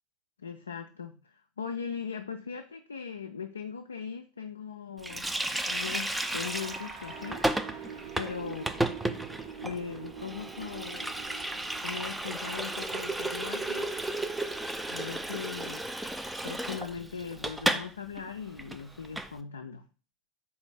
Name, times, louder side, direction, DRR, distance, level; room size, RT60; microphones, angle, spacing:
voice 1, 0.4-5.3 5.7-7.4 8.2-8.7 9.6-11.1 11.8-13.9 14.9-15.8 16.4-19.8, left 6 dB, 80° left, 5 dB, 0.3 m, -39 dB
Water tap faucet, 5.0-17.9 18.2-18.3 18.6-19.3, right 1 dB, 5° right, 0.4 m, -33 dB
sound 1, 5.2-16.1, right 7 dB, 65° right, 1.0 m, -46 dB
4.1 x 2.7 x 3.8 m, 0.35 s
figure-of-eight pair, 75°, 0 cm